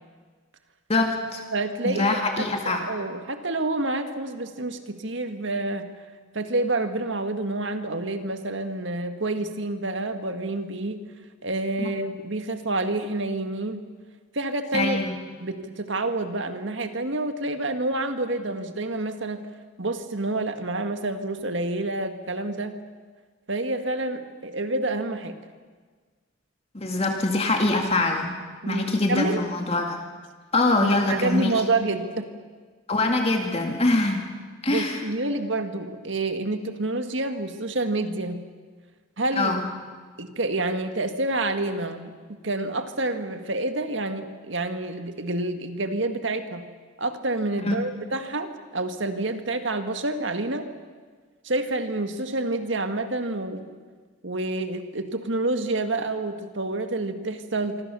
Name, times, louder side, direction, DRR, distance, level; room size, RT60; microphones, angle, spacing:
voice 1, 0.9-1.4 1.8-2.9 11.8-11.9 14.7-15.2 26.7-28.4 28.6-30.0 30.5-31.6 32.9-34.2 34.6-35.0 39.4-39.6 47.6-47.8, left 2 dB, 30° left, 3 dB, 2.1 m, -24 dB
voice 2, 1.5-2.1 2.4-5.9 6.3-11.0 11.4-13.8 14.3-15.0 15.4-19.4 19.8-22.7 23.5-25.4 28.6-29.5 30.8-32.3 34.7-38.4 39.2-39.5 40.2-42.2 42.4-46.6 47.0-50.7 51.4-53.8 54.2-57.8, right 2 dB, 65° right, 8 dB, 1.9 m, -28 dB
25.5 x 25.5 x 7.0 m, 1.5 s
head